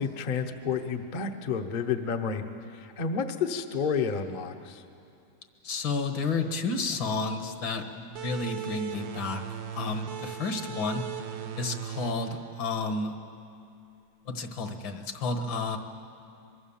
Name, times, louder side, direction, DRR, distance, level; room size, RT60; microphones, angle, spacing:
voice 1, 0.0-2.4 2.7-4.8, left 6 dB, 35° left, 6 dB, 0.8 m, -30 dB
voice 2, 5.6-9.4 9.7-11.0 11.5-13.1 14.3-15.8, left 3 dB, 65° left, 6 dB, 2.1 m, -31 dB
sound 1, 8.2-13.4, right 9 dB, 70° right, 1.5 m, -39 dB
24.0 x 23.0 x 7.2 m, 2.5 s
omnidirectional pair, 2.3 m